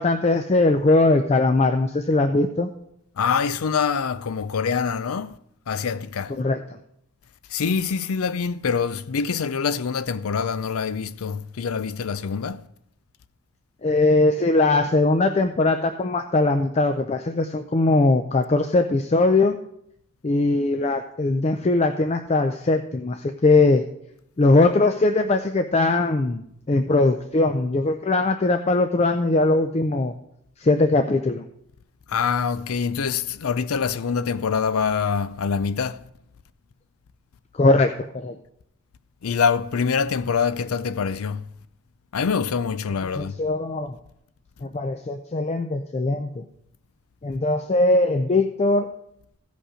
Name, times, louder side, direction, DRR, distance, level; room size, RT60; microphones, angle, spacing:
voice 1, 0.0-2.7 6.4-6.6 13.8-19.6 20.2-23.9 24.4-26.4 26.7-30.1 30.6-31.4 37.5-38.4 43.1-44.0 44.6-46.4 47.2-48.9, left 2 dB, 30° left, 0.4 m, -20 dB
voice 2, 3.2-5.4 5.7-6.3 7.5-12.6 32.1-36.0 39.2-41.5 42.1-43.4, left 6 dB, 80° left, 0.5 m, -25 dB
15.0 x 5.3 x 4.9 m
head